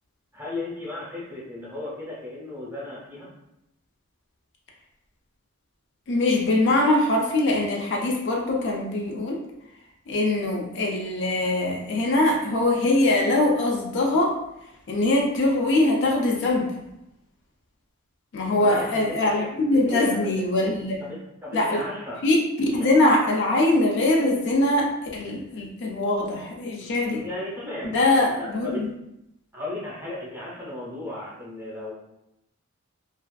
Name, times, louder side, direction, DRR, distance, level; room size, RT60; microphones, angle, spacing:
voice 1, 0.3-3.3 18.5-20.3 21.0-22.2 26.8-27.9 28.2-28.8 29.5-31.9, left 2 dB, 10° right, -6 dB, 0.7 m, -35 dB
voice 2, 6.1-9.4 10.1-14.4 14.9-16.7 18.3-21.0 21.5-21.8 22.2-27.2 27.8-28.9, left 2 dB, 55° left, 0 dB, 0.4 m, -22 dB
2.4 x 2.3 x 2.2 m, 0.85 s
head